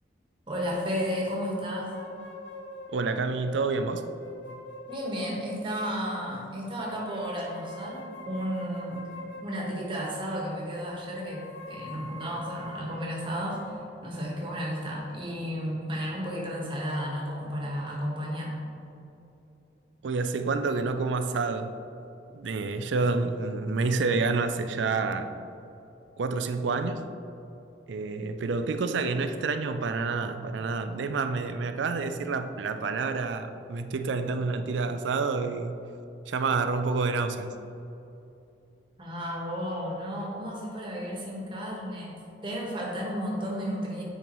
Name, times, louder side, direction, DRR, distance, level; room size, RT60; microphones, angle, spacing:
voice 1, 0.5-1.9 4.9-9.1 9.4-13.7 14.0-18.6 39.0-42.1 42.4-44.0, equal, 25° right, -3 dB, 1.2 m, -33 dB
sound 1, 1.9-6.1 6.8-10.2 11.1-15.5, left 1 dB, 90° left, 0.8 m, -44 dB
voice 2, 2.9-4.1 20.0-21.7 22.3-25.3 26.2-27.0 27.9-35.8 36.3-37.5, right 4 dB, 80° right, 9 dB, 0.4 m, -28 dB
8.6 x 5.2 x 3.0 m, 2.9 s
head